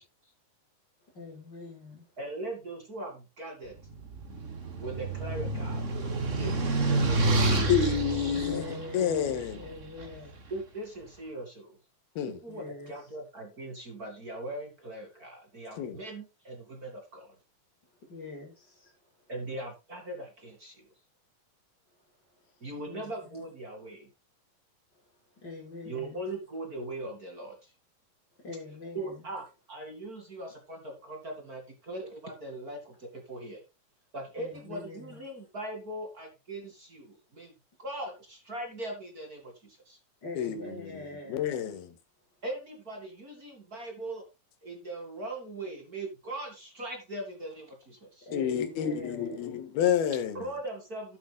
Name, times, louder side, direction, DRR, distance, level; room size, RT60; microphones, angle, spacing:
voice 1, 1.1-2.1 8.1-10.4 12.5-13.1 18.0-18.9 22.3-22.5 22.9-23.4 24.9-25.0 25.4-26.2 28.4-29.3 34.4-35.2 40.2-41.5 48.3-49.6, left 3 dB, 25° left, 7.1 m, -43 dB
voice 2, 2.2-3.8 4.8-7.7 10.5-11.8 12.4-17.3 19.3-20.9 22.6-24.1 25.8-27.7 28.9-33.6 34.1-37.5 37.8-40.0 42.4-44.2 44.6-48.3 50.3-51.2, right 1 dB, 30° right, 1.9 m, -40 dB
sound 1, 3.9-10.2, right 2 dB, 65° right, 0.7 m, -29 dB
voice 3, 7.7-9.6 12.2-12.4 15.8-16.0 40.4-40.9 41.3-41.9 48.3-50.4, left 9 dB, 80° left, 3.3 m, -29 dB
12.5 x 10.5 x 2.3 m
omnidirectional pair, 4.4 m